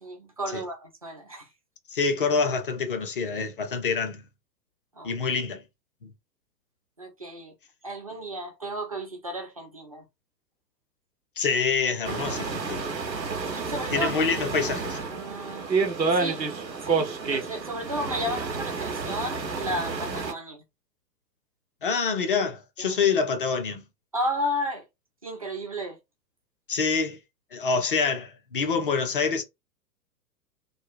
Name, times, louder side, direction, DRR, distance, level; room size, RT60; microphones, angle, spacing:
voice 1, 0.0-1.5 5.0-5.1 7.0-7.5 7.8-10.0 13.5-14.1 15.1-15.7 16.1-16.4 16.8-20.6 22.8-23.0 24.1-24.8 25.2-26.0, equal, 25° right, 0.4 m, -33 dB
voice 2, 1.9-4.2 5.0-5.6 6.0-6.1 11.4-12.8 13.9-15.0 21.8-23.8 26.7-27.2 27.5-29.4, left 5 dB, 35° left, 0.5 m, -26 dB
sound 1, 12.0-20.3, right 4 dB, 85° right, 0.8 m, -29 dB
3.2 x 2.2 x 2.5 m
figure-of-eight pair, 115°, 49 cm